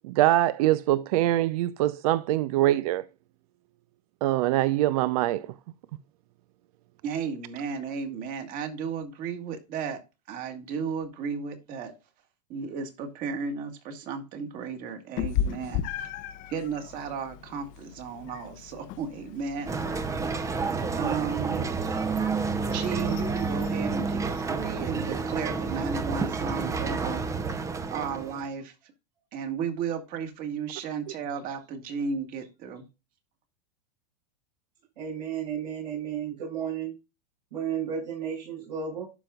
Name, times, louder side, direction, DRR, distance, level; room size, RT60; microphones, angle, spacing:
voice 1, 0.0-3.0 4.2-5.5, right 15 dB, 60° right, 0.5 m, -23 dB
voice 2, 7.0-10.0 10.3-11.9 12.5-15.8 16.5-19.7 20.9-21.7 22.7-27.2 27.9-28.7 29.3-32.8, right 6 dB, 40° right, 1.9 m, -34 dB
Meow, 15.2-24.8, left 9 dB, 40° left, 0.8 m, -37 dB
sound 1, 19.7-28.5, right 4 dB, 15° right, 0.7 m, -29 dB
voice 3, 35.0-36.9 37.5-39.1, right 8 dB, 85° right, 5.1 m, -33 dB
12.0 x 5.1 x 2.3 m
supercardioid pair, 130°, 21 cm